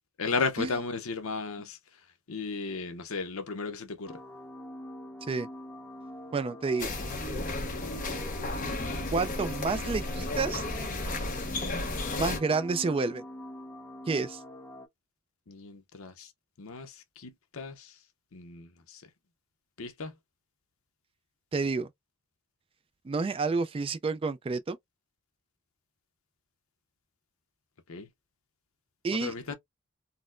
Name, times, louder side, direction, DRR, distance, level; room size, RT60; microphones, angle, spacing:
voice 1, 0.2-1.8 2.3-4.2 15.5-16.3 16.6-17.9 18.3-19.0 19.8-20.1 27.9-28.1 29.1-29.5, left 4 dB, 70° left, 0.7 m, -35 dB
sound 1, 4.1-14.9, left 1 dB, 10° left, 0.6 m, -44 dB
voice 2, 6.3-6.9 9.1-10.6 12.1-13.2 14.1-14.4 21.5-21.9 23.1-24.8 29.0-29.5, right 4 dB, 25° right, 0.3 m, -29 dB
sound 2, 6.8-12.4, left 2 dB, 40° left, 0.8 m, -33 dB
4.1 x 2.1 x 2.5 m
head